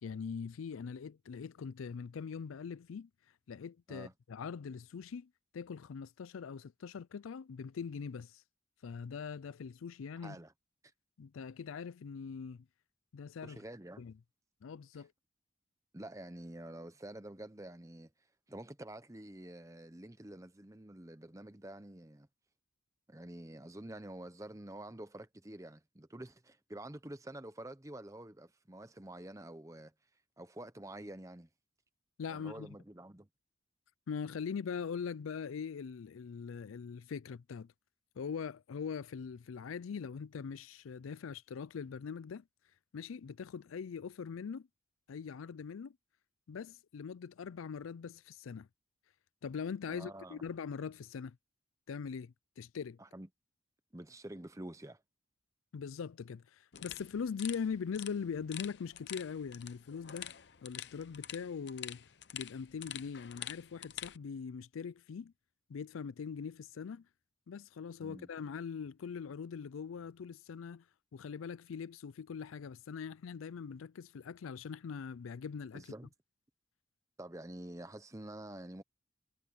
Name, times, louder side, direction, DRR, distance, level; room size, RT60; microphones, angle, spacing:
voice 1, 0.0-3.1 3.5-8.4 8.8-10.4 11.2-12.7 13.1-13.6 14.0-14.1 14.6-15.1 32.2-32.8 34.1-37.7 38.2-42.4 42.9-44.7 45.1-46.0 46.5-48.7 49.4-51.4 51.9-53.0 55.7-60.4 60.6-65.3 65.7-67.1 67.5-70.8 71.1-75.8, left 6 dB, 90° left, 0.4 m, -42 dB
voice 2, 10.2-10.5 13.4-14.0 14.9-15.0 15.9-18.1 18.5-22.3 23.1-29.9 30.4-31.5 32.3-33.3 49.9-50.4 53.0-53.3 53.9-55.0 68.0-68.3 75.7-76.1 77.2-78.8, right 1 dB, 15° right, 0.8 m, -48 dB
sound 1, 56.7-64.2, left 12 dB, 55° left, 0.7 m, -47 dB
head